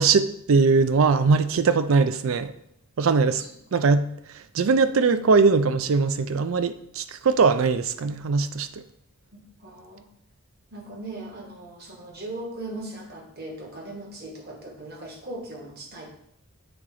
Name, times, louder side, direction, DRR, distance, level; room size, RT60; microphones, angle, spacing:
voice 1, 0.0-2.5 3.0-3.4 3.7-4.1 4.5-8.7, right 4 dB, 65° right, 0.4 m, -21 dB
voice 2, 3.2-3.5 9.3-10.0 10.7-16.1, right 2 dB, 45° right, 1.3 m, -39 dB
7.1 x 3.8 x 4.8 m
head